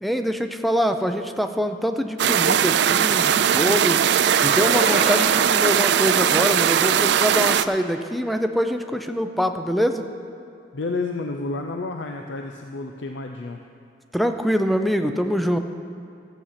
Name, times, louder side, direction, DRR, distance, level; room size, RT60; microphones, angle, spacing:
voice 1, 0.0-4.0 4.4-10.0 14.1-15.6, equal, ahead, 7 dB, 0.5 m, -24 dB
sound 1, 2.2-7.6, right 9 dB, 65° right, 0.4 m, -19 dB
sound 2, 4.2-8.4, right 2 dB, 30° right, 1.3 m, -31 dB
voice 2, 10.7-13.6, left 3 dB, 75° left, 4 dB, 0.6 m, -30 dB
14.5 x 8.2 x 5.7 m, 2.4 s
head